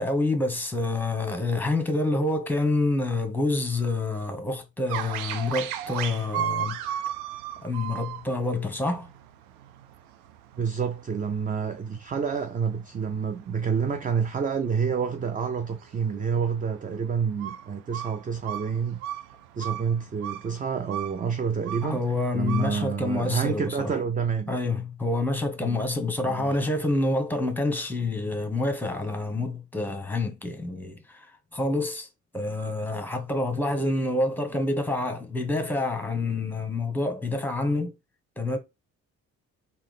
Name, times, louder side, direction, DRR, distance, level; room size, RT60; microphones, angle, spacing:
voice 1, 0.0-6.8 7.6-9.1 21.8-24.0 24.5-31.3 31.5-32.1 32.3-37.9 38.4-38.6, left 2 dB, 5° left, 1.0 m, -27 dB
sound 1, 4.9-23.4, right 10 dB, 75° right, 0.5 m, -37 dB
voice 2, 10.6-19.0 19.6-22.0 22.3-24.5 25.6-25.8 26.2-26.5, right 6 dB, 20° right, 0.4 m, -28 dB
3.7 x 2.8 x 3.3 m
figure-of-eight pair, 45°, 43 cm